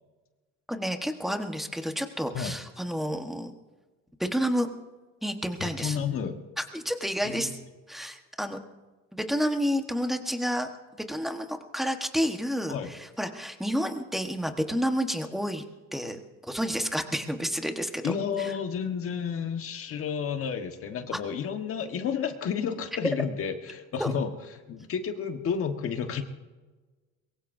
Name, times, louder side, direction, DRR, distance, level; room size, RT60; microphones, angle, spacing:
voice 1, 0.7-3.5 4.2-4.7 5.2-6.0 6.6-7.5 7.9-8.6 9.1-10.7 11.1-15.6 15.9-16.2 16.5-18.5 21.1-21.2 24.0-24.1, equal, ahead, 5 dB, 1.3 m, -30 dB
voice 2, 5.6-6.4 7.2-7.5 12.7-12.9 18.0-26.2, left 7 dB, 45° left, 6 dB, 1.4 m, -31 dB
23.0 x 22.5 x 2.7 m, 1.2 s
cardioid pair, 155°, 32 cm